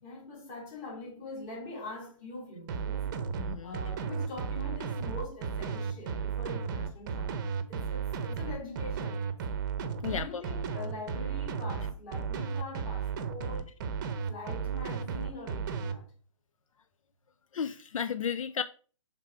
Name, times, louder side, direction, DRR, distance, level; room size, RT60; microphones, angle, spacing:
voice 1, 0.0-3.1 3.6-9.4 10.1-13.7 14.3-16.1, left 2 dB, 30° left, 3.0 m, -43 dB
sound 1, 2.7-15.9, right 6 dB, 35° right, 0.7 m, -34 dB
voice 2, 3.4-3.8 10.0-10.4 17.5-18.6, left 7 dB, 75° left, 0.4 m, -33 dB
6.5 x 3.6 x 4.6 m
hypercardioid pair, 145°, 17 cm